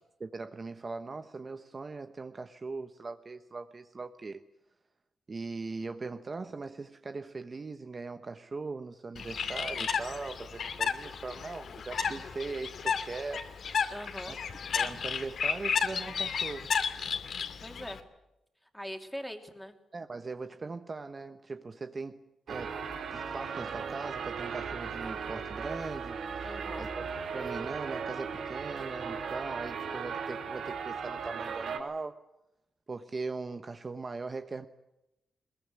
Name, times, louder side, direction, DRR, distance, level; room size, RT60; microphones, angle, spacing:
voice 1, 0.2-4.4 5.3-13.5 14.3-14.4 14.7-16.7 19.9-22.2 22.5-22.8 23.1-26.5 26.8-27.1 27.3-32.2 32.9-34.7, right 3 dB, 30° right, 8 dB, 1.0 m, -40 dB
Bird, 9.2-18.0, left 6 dB, 60° left, 2.5 m, -33 dB
voice 2, 13.9-14.4 17.6-18.0 18.7-19.7 26.4-26.9, equal, ahead, 5 dB, 3.1 m, -41 dB
sound 1, 22.5-31.8, right 6 dB, 80° right, 4.8 m, -37 dB
23.5 x 22.0 x 9.7 m, 0.89 s
wide cardioid pair, 140°, 0 cm